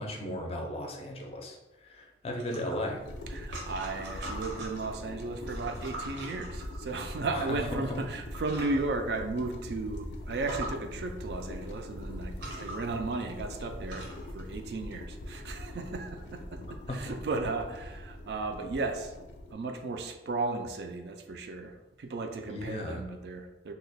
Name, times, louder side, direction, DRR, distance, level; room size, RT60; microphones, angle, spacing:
voice 1, 0.0-3.0 7.3-8.0 16.9-17.2 22.5-23.0, left 1 dB, 35° left, 1 dB, 0.5 m, -36 dB
sound 1, 2.4-4.9 5.4-7.2 7.9-8.0 8.3-8.8 9.3-9.4 9.7-9.8 10.3-10.7 11.7-11.8 12.3-14.3, right 1 dB, 85° right, 0.9 m, -42 dB
sound 2, 3.0-19.5, left 1 dB, 90° left, 0.4 m, -42 dB
voice 2, 3.3-14.1 14.3-19.1 19.5-23.7, right 3 dB, 65° right, 5 dB, 0.3 m, -35 dB
2.8 x 2.2 x 4.0 m, 1.0 s
head